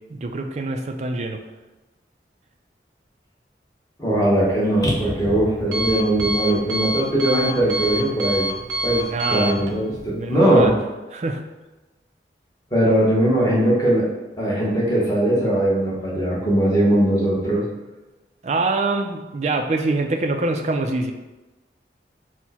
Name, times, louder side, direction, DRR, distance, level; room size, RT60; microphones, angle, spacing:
voice 1, 0.1-1.4 9.1-10.8 11.1-11.4 18.4-21.1, right 2 dB, 40° right, 5 dB, 0.3 m, -25 dB
voice 2, 4.0-8.5 8.8-10.7 12.7-14.1 14.4-17.6, right 1 dB, 20° left, -5 dB, 1.0 m, -20 dB
Alarm, 4.3-10.7, equal, 75° right, 0.6 m, -29 dB
4.5 x 2.1 x 4.1 m, 1.1 s
head